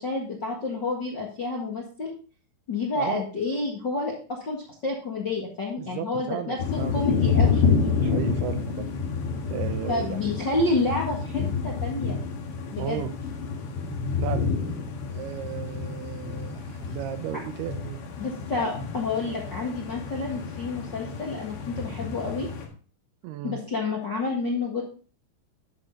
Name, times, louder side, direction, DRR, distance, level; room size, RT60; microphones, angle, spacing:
voice 1, 0.0-2.1 2.7-7.7 9.9-12.2 12.7-13.0 18.2-22.5 23.4-24.8, left 3 dB, 50° left, -3 dB, 1.3 m, -29 dB
voice 2, 5.8-8.9 9.5-10.3 12.8-13.1 14.2-14.5 15.1-18.0 23.2-23.6, right 11 dB, 80° right, 8 dB, 2.6 m, -35 dB
sound 1, 6.6-22.7, left 5 dB, 85° left, 3.9 m, -29 dB
11.5 x 6.9 x 3.8 m, 0.39 s
omnidirectional pair, 4.9 m